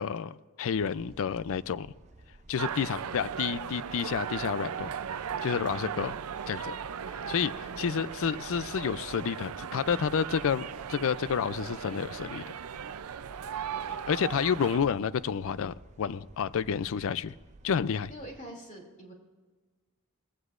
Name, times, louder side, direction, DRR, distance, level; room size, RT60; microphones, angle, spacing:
voice 1, 0.0-1.9 2.5-4.9 5.4-6.1 6.5-6.8 7.3-12.5 13.9-17.3 17.6-18.1, left 7 dB, 65° left, 0.4 m, -30 dB
sound 1, 0.7-18.4, right 2 dB, 30° right, 0.6 m, -54 dB
sound 2, 2.6-14.8, right 7 dB, 75° right, 0.5 m, -37 dB
voice 2, 5.6-5.9 7.6-7.8 18.1-19.1, right 1 dB, 35° left, 2.7 m, -45 dB
21.0 x 16.0 x 2.5 m
head